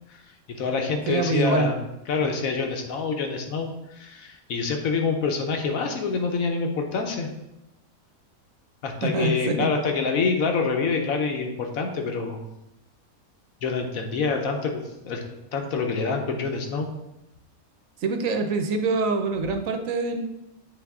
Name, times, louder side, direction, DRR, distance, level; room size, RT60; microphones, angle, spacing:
voice 1, 0.5-1.7 2.1-7.3 8.8-12.4 13.6-15.2 15.5-16.9, left 4 dB, 70° left, 3 dB, 1.2 m, -26 dB
voice 2, 1.1-1.7 9.0-9.7 18.0-20.3, right 3 dB, 70° right, 5 dB, 1.0 m, -25 dB
8.0 x 3.5 x 3.6 m, 0.91 s
omnidirectional pair, 1.6 m